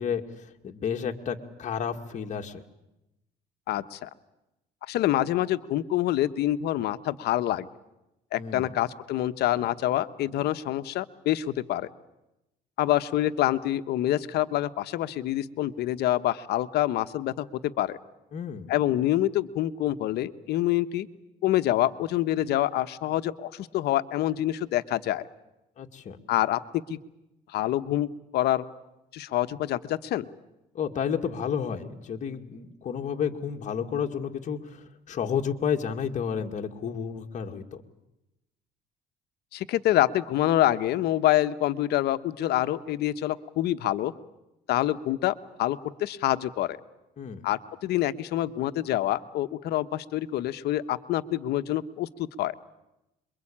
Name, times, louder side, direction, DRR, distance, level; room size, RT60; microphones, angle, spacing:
voice 1, 0.0-2.6 8.3-8.7 18.3-18.7 25.8-26.2 30.7-37.8 47.2-47.4, left 7 dB, 45° left, 3 dB, 2.2 m, -31 dB
voice 2, 3.7-4.1 4.9-7.7 8.3-11.9 12.8-17.5 17.8-18.0 18.7-21.1 21.4-25.2 26.3-26.6 26.9-27.0 27.5-28.6 29.1-30.2 39.5-44.1 44.7-46.8 47.4-52.5, left 13 dB, 75° left, 11 dB, 1.1 m, -26 dB
27.0 x 23.0 x 8.7 m, 0.91 s
cardioid pair, 110°, 17 cm